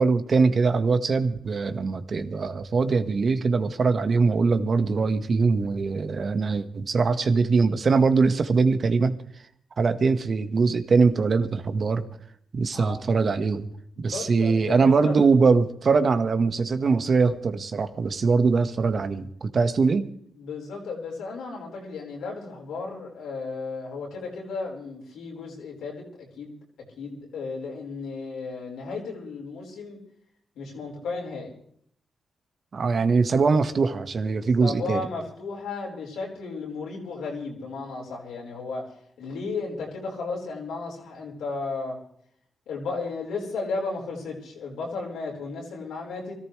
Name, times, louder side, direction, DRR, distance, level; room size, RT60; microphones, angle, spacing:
voice 1, 0.0-9.2 9.8-12.1 12.5-13.7 14.0-20.1 32.7-35.0, right 4 dB, 55° right, 9 dB, 1.5 m, -22 dB
voice 2, 14.0-15.2 20.4-26.6 27.0-30.0 30.5-31.5 34.6-38.8 39.2-42.0 42.7-46.4, left 4 dB, 85° left, -2 dB, 4.7 m, -34 dB
24.5 x 14.0 x 3.3 m, 0.65 s
supercardioid pair, 55°, 0 cm